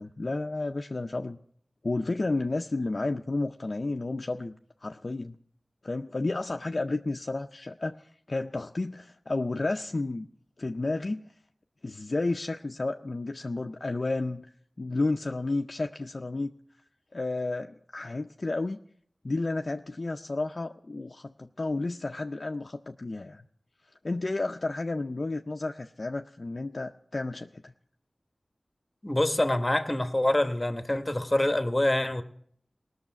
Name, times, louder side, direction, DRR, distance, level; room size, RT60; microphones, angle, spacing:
voice 1, 0.0-1.4 1.8-4.5 4.8-5.4 5.8-10.3 10.6-11.3 11.8-14.5 14.8-16.5 17.1-18.8 19.2-23.4 24.0-27.7, left 2 dB, 60° left, 0.4 m, -31 dB
voice 2, 29.0-32.2, left 1 dB, 25° left, 1.0 m, -25 dB
18.5 x 6.4 x 5.8 m
wide cardioid pair, 50°, 0 cm